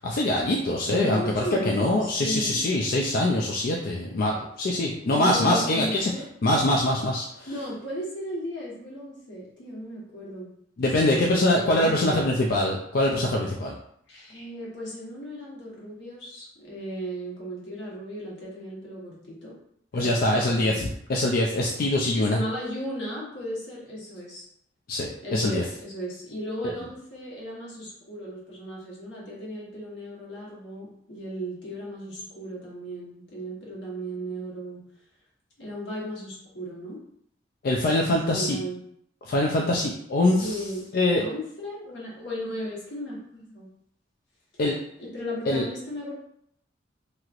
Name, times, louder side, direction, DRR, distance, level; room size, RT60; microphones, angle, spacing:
voice 1, 0.0-6.1 6.4-7.5 10.8-13.8 19.9-22.4 24.9-25.6 26.6-26.7 37.6-38.6 39.2-40.6 40.9-41.2 44.6-44.8 45.5-45.6, left 1 dB, 55° left, -1 dB, 0.4 m, -24 dB
voice 2, 0.9-2.6 5.1-6.2 7.5-10.5 10.8-12.3 14.1-19.5 19.9-20.9 22.1-24.4 25.2-34.8 35.6-37.0 38.1-38.8 40.4-43.7 45.0-46.1, equal, 75° left, -5 dB, 1.2 m, -35 dB
3.0 x 2.8 x 2.4 m, 0.71 s
head